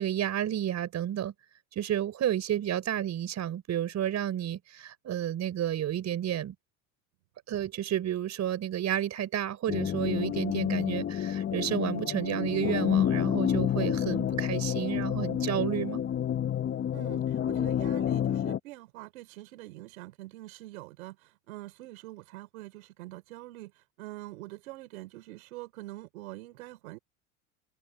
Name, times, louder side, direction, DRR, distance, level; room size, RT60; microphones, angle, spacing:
voice 1, 0.0-1.3 1.7-6.5 7.5-16.0, right 11 dB, 40° right, 4.5 m, -31 dB
sound 1, 9.7-18.6, left 10 dB, 30° left, 0.9 m, -29 dB
voice 2, 16.9-27.0, right 18 dB, 80° right, 3.9 m, -45 dB
open air
hypercardioid pair, 95°, 41 cm